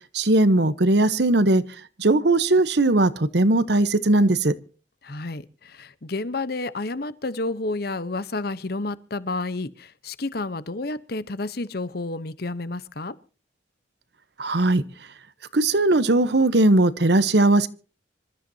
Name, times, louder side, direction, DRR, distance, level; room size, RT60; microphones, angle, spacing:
voice 1, 0.1-1.6 2.0-4.5 14.4-14.8 15.5-17.7, right 2 dB, 60° right, 1.0 m, -19 dB
voice 2, 5.0-13.1, left 2 dB, 55° left, 0.9 m, -30 dB
26.0 x 13.5 x 2.8 m
head